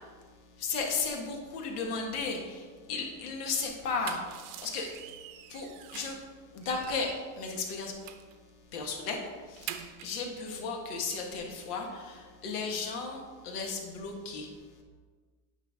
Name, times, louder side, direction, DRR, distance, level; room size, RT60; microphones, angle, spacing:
voice 1, 0.6-4.9 5.5-6.2 6.5-8.0 8.7-9.2 9.5-14.5, left 4 dB, 85° left, 2 dB, 1.7 m, -35 dB
sound 1, 3.8-6.3 6.6-8.3 8.7-8.9 9.2-10.2, right 11 dB, 70° right, 0.8 m, -45 dB
9.1 x 5.6 x 3.7 m, 1.5 s
supercardioid pair, 125°, 45 cm